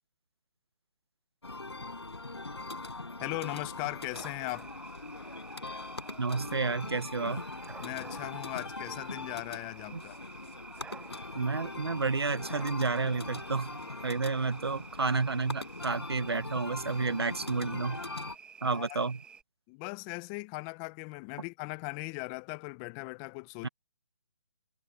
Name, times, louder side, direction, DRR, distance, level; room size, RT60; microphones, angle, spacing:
sound 1, 1.4-18.4, left 2 dB, 90° left, 6.3 m, -41 dB
voice 1, 3.2-4.7 7.8-10.2 18.6-19.0 19.7-23.7, left 30 dB, 20° left, 1.1 m, -38 dB
sound 2, 4.1-19.4, right 6 dB, 10° right, 2.3 m, -52 dB
voice 2, 6.2-7.4 9.9-10.0 11.3-18.0 18.6-19.2 23.6-23.7, right 4 dB, 80° right, 1.6 m, -31 dB
figure-of-eight pair, 145°, 13 cm